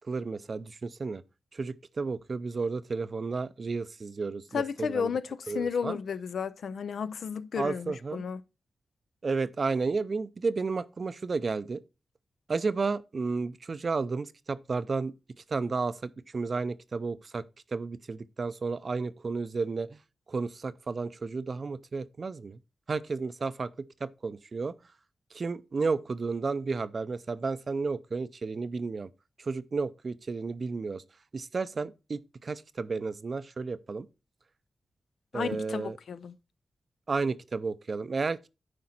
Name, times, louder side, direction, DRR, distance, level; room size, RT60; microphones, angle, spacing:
voice 1, 0.1-1.2 1.5-5.1 5.5-6.0 7.6-8.2 9.2-11.8 12.5-15.1 15.5-17.4 17.7-19.9 20.3-22.6 22.9-23.7 24.0-24.7 25.3-29.1 29.4-31.0 31.3-34.1 35.3-36.0 37.1-38.5, right 4 dB, 50° right, 0.5 m, -32 dB
voice 2, 4.5-8.4 35.3-36.3, left 6 dB, 85° left, 0.5 m, -33 dB
9.5 x 5.0 x 4.3 m
wide cardioid pair, 100°, 0 cm